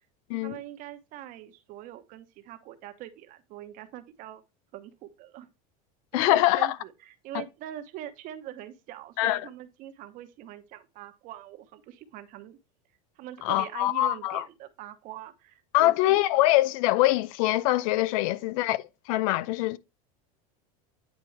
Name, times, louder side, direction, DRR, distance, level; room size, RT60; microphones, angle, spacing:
voice 1, 0.4-4.4 4.7-5.5 6.1-12.6 13.2-16.2, right 12 dB, 45° right, 1.0 m, -43 dB
voice 2, 6.1-6.7 7.3-7.4 9.2-9.4 13.4-14.4 15.7-19.8, left 16 dB, 70° left, 0.6 m, -24 dB
9.3 x 4.5 x 3.3 m
supercardioid pair, 140°, 18 cm